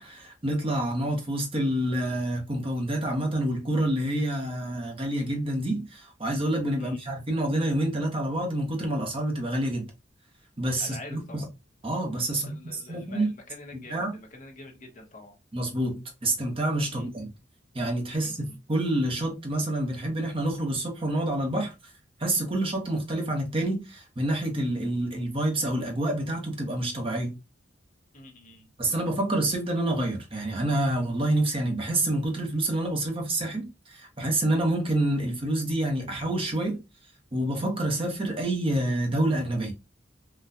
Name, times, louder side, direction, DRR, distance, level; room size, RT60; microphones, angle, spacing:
voice 1, 0.0-9.9 10.6-11.4 11.8-13.3 13.7-14.2 15.5-17.3 17.7-21.7 22.2-27.4 28.8-36.8 37.3-39.7, right 1 dB, 30° right, 0.8 m, -28 dB
voice 2, 6.8-7.2 10.8-11.4 12.3-15.3 16.9-17.1 18.1-18.6 28.1-28.7, left 2 dB, 40° left, 0.9 m, -46 dB
3.9 x 2.2 x 2.7 m
head